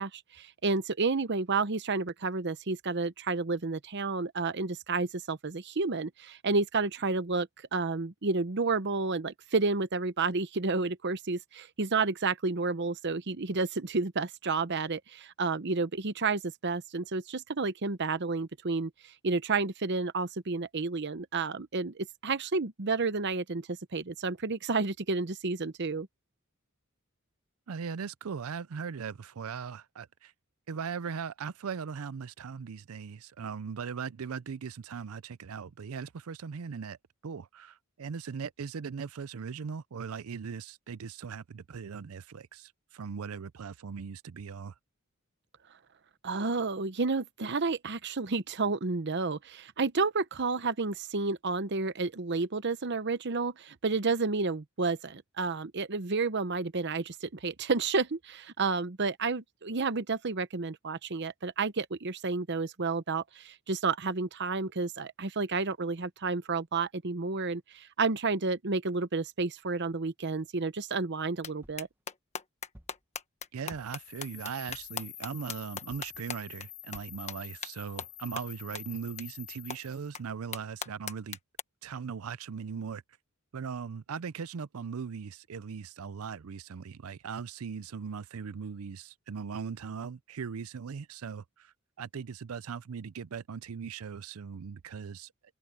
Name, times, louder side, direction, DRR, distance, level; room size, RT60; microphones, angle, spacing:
voice 1, 0.0-18.9 19.2-26.1 46.2-71.9, right 4 dB, 55° right, 0.9 m, -31 dB
voice 2, 27.7-30.3 30.7-37.0 37.2-44.7 73.5-81.4 81.8-83.0 83.5-95.3, right 6 dB, 85° right, 0.5 m, -39 dB
sound 1, 71.4-71.5 71.8-76.7 76.9-77.0 77.3-77.4 77.6-77.7 78.0-78.1 78.4-78.5 78.7-78.8 79.2-79.3 79.7-79.8 80.1-80.2 80.5-81.6, left 6 dB, 30° left, 1.3 m, -38 dB
sound 2, 71.6-71.9 72.7-73.0 73.7-74.1 74.7-75.0 75.9-76.2 76.9-77.2 77.8-77.9 78.2-78.3, equal, 10° right, 1.4 m, -55 dB
sound 3, 73.8-80.1, left 14 dB, 55° left, 3.7 m, -47 dB
head